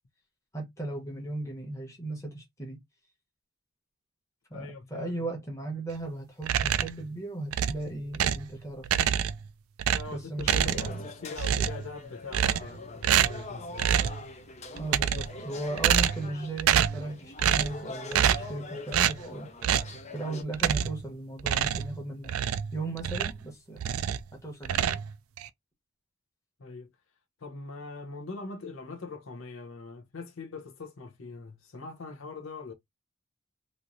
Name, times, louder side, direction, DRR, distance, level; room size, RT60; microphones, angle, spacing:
voice 1, 0.5-2.8 4.5-9.1 10.1-11.0 14.8-19.5 20.1-22.3 22.7-23.9 24.4-25.0, right 2 dB, 15° left, 1.1 m, -37 dB
voice 2, 4.5-5.3 9.9-13.9 26.6-26.9 27.4-32.7, left 4 dB, 75° left, 0.8 m, -42 dB
sound 1, 6.4-7.0 7.5-8.5 8.8-9.5 9.8-11.1 11.4-11.9 12.3-12.8 13.0-13.5 13.8-14.2 14.8-15.4 15.8-16.3 16.6-17.0 17.4-17.8 18.1-18.5 18.9-19.2 19.6-19.9 20.5-21.0 21.4-23.4 23.8-24.3 24.6-25.5, right 9 dB, 85° right, 0.3 m, -26 dB
sound 2, 10.4-20.4, left 3 dB, 35° left, 0.5 m, -43 dB
3.1 x 2.6 x 2.6 m
head